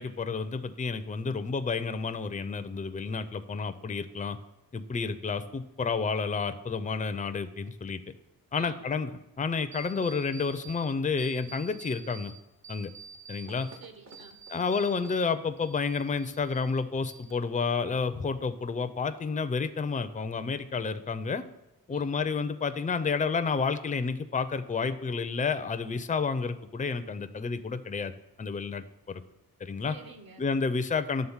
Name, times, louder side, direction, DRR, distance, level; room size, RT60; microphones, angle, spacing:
voice 1, 0.0-4.4 4.7-8.0 8.5-12.3 12.7-12.9 13.3-13.7 14.5-21.5 21.9-28.1 28.4-29.2 29.6-29.9 30.4-31.3, left 5 dB, 20° left, 10 dB, 0.4 m, -30 dB
voice 2, 8.6-8.9 13.5-14.4 21.9-22.2 29.8-30.5, right 3 dB, 60° right, 7 dB, 1.2 m, -48 dB
sound 1, 9.7-10.9 11.2-12.3 12.6-15.3 15.6-16.7 17.0-17.6, right 5 dB, 40° right, 0.8 m, -48 dB
11.0 x 3.8 x 7.2 m, 0.93 s
wide cardioid pair, 140°, 40 cm